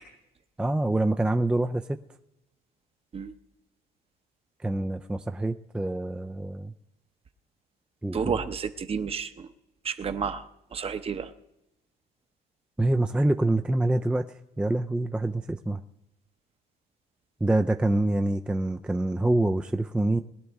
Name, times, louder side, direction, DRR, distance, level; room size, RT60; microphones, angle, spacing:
voice 1, 0.6-2.0 4.6-6.7 8.0-8.4 12.8-15.8 17.4-20.2, right 2 dB, 5° right, 6 dB, 0.4 m, -26 dB
voice 2, 8.1-9.5 9.8-10.4 10.7-11.3, right 6 dB, 35° right, 9 dB, 0.8 m, -31 dB
21.0 x 11.0 x 3.5 m, 0.91 s
cardioid pair, 110°, 17 cm